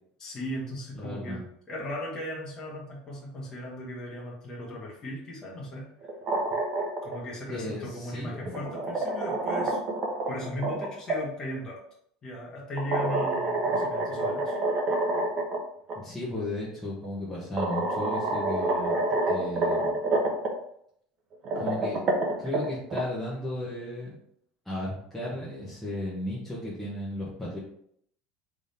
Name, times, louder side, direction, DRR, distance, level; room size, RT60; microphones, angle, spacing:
voice 1, 0.2-5.9 7.0-9.8 10.3-11.8 12.2-14.5, equal, 30° left, -4 dB, 1.3 m, -37 dB
voice 2, 0.9-1.4 7.5-8.6 16.0-18.9 19.3-20.0 21.5-22.0 22.4-24.2 24.6-27.6, left 1 dB, 5° left, -9 dB, 1.3 m, -35 dB
sound 1, 6.0-7.2 8.3-11.2 12.8-15.6 15.9-16.0 17.0-17.1 17.6-20.5 21.3-23.0, right 2 dB, 40° right, 1.0 m, -28 dB
3.6 x 3.6 x 4.1 m, 0.68 s
supercardioid pair, 135°, 2 cm